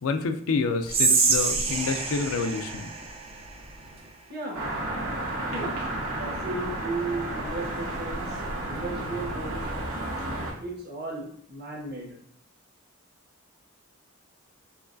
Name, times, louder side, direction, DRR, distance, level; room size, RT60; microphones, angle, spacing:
voice 1, 0.0-2.9, left 4 dB, 70° left, 7 dB, 0.4 m, -28 dB
Whispering, 0.9-4.1, right 4 dB, 25° right, 0.5 m, -26 dB
voice 2, 4.3-4.7 5.5-5.7 6.2-8.4 8.7-9.9 10.6-12.1, right 2 dB, 45° right, -3 dB, 1.3 m, -35 dB
sound 1, 4.5-10.5, right 1 dB, 80° right, 1.3 m, -32 dB
6.0 x 3.1 x 2.5 m, 0.65 s
head